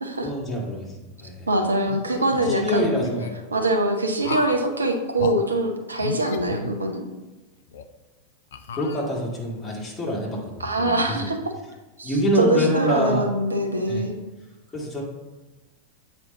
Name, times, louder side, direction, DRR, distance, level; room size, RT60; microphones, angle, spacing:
voice 1, 0.2-0.9 1.2-1.5 2.4-3.3 8.7-11.3 12.0-13.2 13.9-14.1 14.7-15.0, equal, 10° left, -4 dB, 1.7 m, -26 dB
voice 2, 1.5-3.1 3.5-7.1 10.6-11.4 12.0-14.2, right 1 dB, 75° right, 3 dB, 0.8 m, -23 dB
sound 1, 1.8-3.3 4.2-4.7 5.2-5.4 6.0-7.2 7.7-7.8 8.5-9.4, left 6 dB, 60° left, 0.4 m, -34 dB
7.8 x 4.3 x 3.9 m, 1.1 s
figure-of-eight pair, 90°, 0 cm